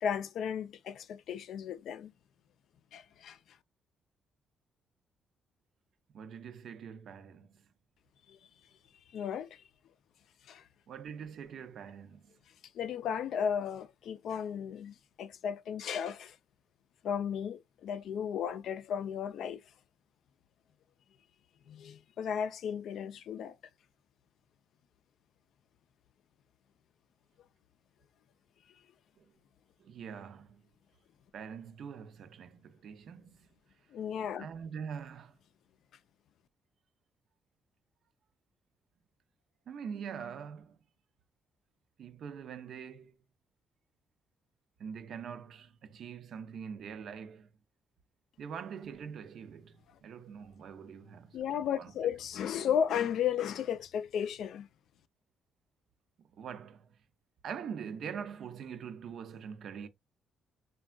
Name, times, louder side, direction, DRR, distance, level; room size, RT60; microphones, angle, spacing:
voice 1, 0.0-2.1 2.9-3.4 8.3-8.4 9.1-9.6 10.5-10.6 12.7-16.4 17.0-19.6 21.7-23.5 33.9-34.5 51.3-54.7, left 8 dB, 70° left, 0.3 m, -34 dB
voice 2, 6.1-7.7 10.9-12.4 29.2-29.3 29.8-30.7 31.3-33.6 34.4-35.4 39.7-40.8 42.0-43.2 44.8-47.5 48.4-52.0 56.2-57.0 57.4-59.9, right 7 dB, 65° right, 0.5 m, -44 dB
3.5 x 2.2 x 2.3 m
cardioid pair, 90°, 0 cm